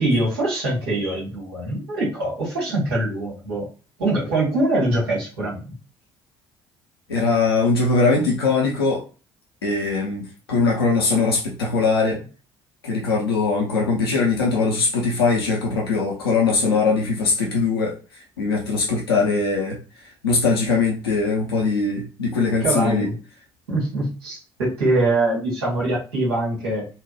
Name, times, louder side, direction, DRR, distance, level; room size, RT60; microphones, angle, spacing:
voice 1, 0.0-3.7 4.0-5.8 22.6-23.1 23.7-26.9, right 2 dB, 85° right, -5 dB, 1.8 m, -23 dB
voice 2, 7.1-9.0 9.6-10.2 10.5-12.2 12.8-19.8 20.2-23.1, left 4 dB, 90° left, -2 dB, 0.7 m, -21 dB
4.2 x 2.2 x 2.4 m, 0.34 s
hypercardioid pair, 55°, 13 cm